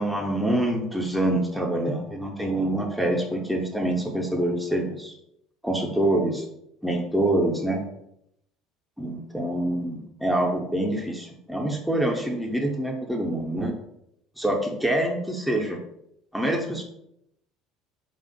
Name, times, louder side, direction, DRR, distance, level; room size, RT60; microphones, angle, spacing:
voice 1, 0.0-5.1 5.6-6.5 6.8-7.8 9.0-13.7 14.4-15.8 16.3-16.8, right 1 dB, ahead, 0 dB, 0.4 m, -26 dB
2.5 x 2.1 x 2.5 m, 0.78 s
figure-of-eight pair, 60°, 0 cm